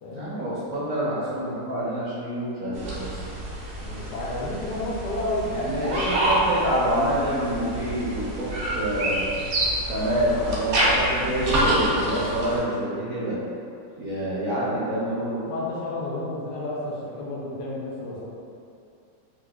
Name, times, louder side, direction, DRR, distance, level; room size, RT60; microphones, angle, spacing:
voice 1, 0.1-3.3 5.5-9.3 9.8-13.4 14.0-15.5, right 1 dB, 70° right, -9 dB, 0.7 m, -27 dB
sound 1, 2.7-12.6, right 1 dB, 90° right, 1.4 m, -27 dB
voice 2, 3.8-6.3 15.5-18.3, left 2 dB, 70° left, -6 dB, 1.0 m, -31 dB
4.8 x 2.0 x 2.2 m, 2.5 s
omnidirectional pair, 2.0 m